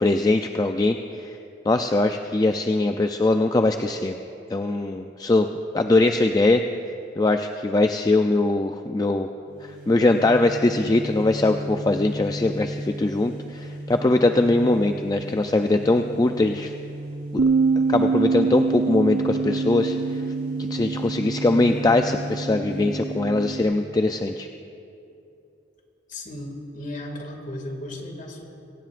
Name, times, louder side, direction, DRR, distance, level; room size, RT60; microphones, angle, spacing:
voice 1, 0.0-1.4 1.6-4.2 4.5-5.5 5.7-6.6 7.2-9.3 9.6-16.7 17.3-17.4 17.9-20.2 20.7-24.5, left 2 dB, 20° left, 6 dB, 0.4 m, -21 dB
sound 1, 9.5-24.0, equal, 55° right, 3.2 m, -35 dB
Bass guitar, 17.4-23.6, right 4 dB, 85° right, 0.5 m, -25 dB
voice 2, 26.1-28.4, left 1 dB, 45° left, 2 dB, 2.2 m, -35 dB
23.5 x 17.5 x 2.5 m, 2.7 s
head